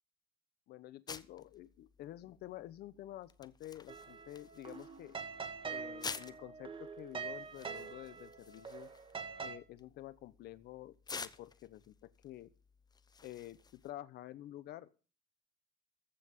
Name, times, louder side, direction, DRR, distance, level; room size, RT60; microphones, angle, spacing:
voice 1, 0.7-5.2 5.7-8.9 9.4-12.5 13.2-15.0, left 14 dB, 70° left, 16 dB, 0.9 m, -50 dB
sound 1, 1.1-13.9, left 5 dB, 25° left, 0.8 m, -51 dB
sound 2, 3.9-9.6, right 5 dB, 30° right, 1.8 m, -45 dB
14.5 x 5.8 x 8.1 m, 0.36 s
cardioid pair, 110°, 17 cm